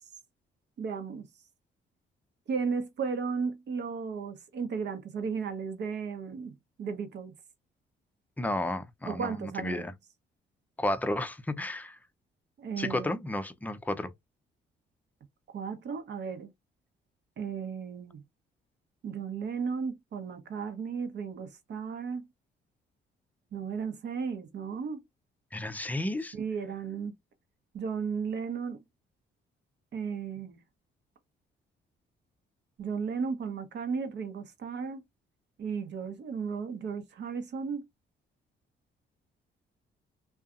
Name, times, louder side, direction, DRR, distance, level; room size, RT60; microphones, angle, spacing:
voice 1, 0.8-1.3 2.5-7.3 9.0-9.9 12.6-13.2 15.5-16.5 17.4-18.2 19.0-22.3 23.5-25.0 26.3-27.1 27.7-28.8 29.9-30.6 32.8-35.0 35.6-37.8, right 5 dB, 60° right, 0.9 m, -35 dB
voice 2, 8.4-9.9 10.8-12.0 12.8-14.1 25.5-26.4, left 1 dB, 10° left, 0.5 m, -32 dB
2.6 x 2.3 x 2.4 m
cardioid pair, 90°, 20 cm